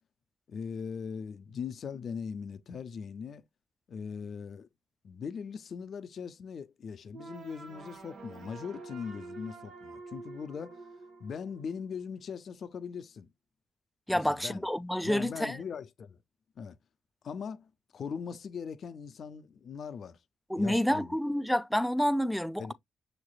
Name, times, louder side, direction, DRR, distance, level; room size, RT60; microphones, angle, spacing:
voice 1, 0.5-3.4 3.9-4.7 5.0-10.8 11.2-13.3 14.1-14.6 15.0-16.2 16.6-16.8 17.2-20.2 20.6-21.2 22.6-22.7, left 6 dB, 60° left, 0.5 m, -40 dB
sound 1, 7.1-12.1, right 3 dB, 75° right, 1.1 m, -48 dB
voice 2, 14.1-15.6 20.5-22.7, equal, ahead, 0.3 m, -29 dB
6.5 x 3.2 x 2.2 m
cardioid pair, 70°, 0 cm